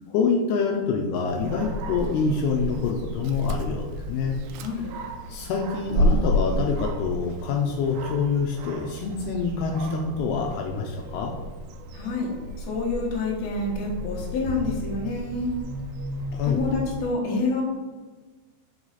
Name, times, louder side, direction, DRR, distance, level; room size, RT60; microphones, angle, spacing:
voice 1, 0.1-4.3 5.3-11.3 16.3-16.6, left 5 dB, 85° left, 1 dB, 2.5 m, -26 dB
Dog, 1.3-17.0, equal, 90° right, 2.7 m, -31 dB
voice 2, 11.9-12.3 12.6-15.5 16.5-17.6, left 3 dB, 60° left, -3 dB, 2.1 m, -27 dB
6.3 x 4.8 x 4.0 m, 1.3 s
omnidirectional pair, 4.8 m